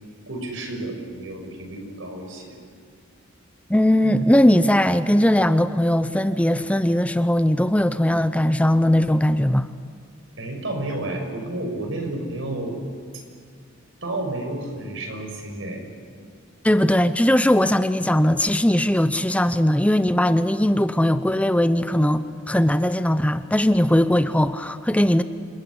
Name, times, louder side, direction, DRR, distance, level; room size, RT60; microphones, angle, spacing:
voice 1, 0.3-2.5 10.4-12.7 14.0-15.8, right 1 dB, 75° right, 3 dB, 6.2 m, -31 dB
voice 2, 3.7-9.7 16.6-25.2, left 1 dB, 5° left, 11 dB, 0.7 m, -19 dB
sound 1, 4.0-7.5, right 1 dB, 40° right, 2.5 m, -41 dB
28.0 x 21.0 x 9.9 m, 2.2 s
head